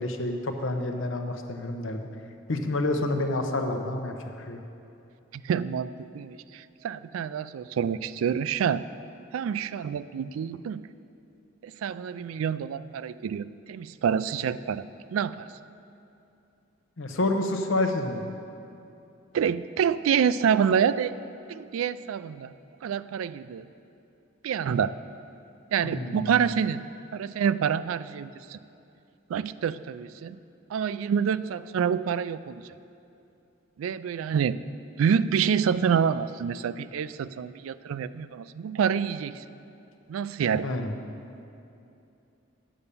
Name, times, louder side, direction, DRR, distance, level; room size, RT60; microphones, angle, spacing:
voice 1, 0.0-2.1 2.5-4.6 17.0-18.2 25.8-26.3 40.6-40.9, left 2 dB, 75° left, 5 dB, 0.8 m, -28 dB
voice 2, 5.3-8.8 9.3-10.8 11.6-14.8 15.1-15.5 19.3-21.1 21.5-22.5 22.8-23.7 24.4-24.9 25.7-26.8 27.1-28.6 29.3-30.4 30.7-32.6 33.8-34.6 35.0-39.4 40.1-40.6, right 7 dB, 90° right, 15 dB, 0.3 m, -27 dB
8.8 x 6.9 x 6.8 m, 2.7 s
head